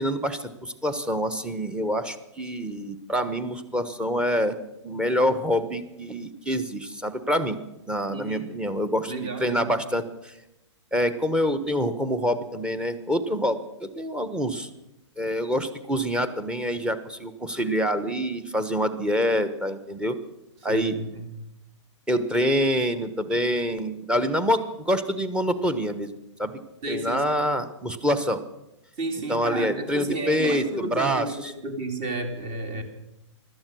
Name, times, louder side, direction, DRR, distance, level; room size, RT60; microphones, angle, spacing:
voice 1, 0.0-4.5 4.8-7.6 7.9-10.3 10.9-14.7 15.2-20.1 20.6-20.9 22.1-26.1 26.4-26.6 26.9-28.4 29.3-31.5, equal, 5° right, 10 dB, 1.1 m, -26 dB
voice 2, 8.1-8.5 9.1-9.7 20.6-21.3 26.8-27.2 29.0-32.8, right 2 dB, 30° right, 6 dB, 2.5 m, -32 dB
16.5 x 12.5 x 6.2 m, 0.90 s
hypercardioid pair, 125°, 16 cm